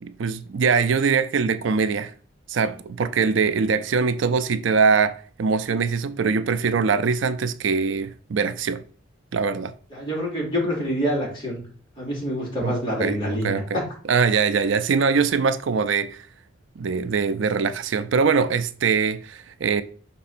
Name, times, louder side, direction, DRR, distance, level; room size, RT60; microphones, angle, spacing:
voice 1, 0.0-2.1 2.5-8.8 9.3-9.7 12.6-12.7 13.0-13.8 14.1-16.3 16.8-19.8, right 5 dB, 70° right, 0.4 m, -22 dB
voice 2, 9.9-11.6 12.0-13.8, equal, 25° left, 3.3 m, -26 dB
5.9 x 4.2 x 4.3 m
head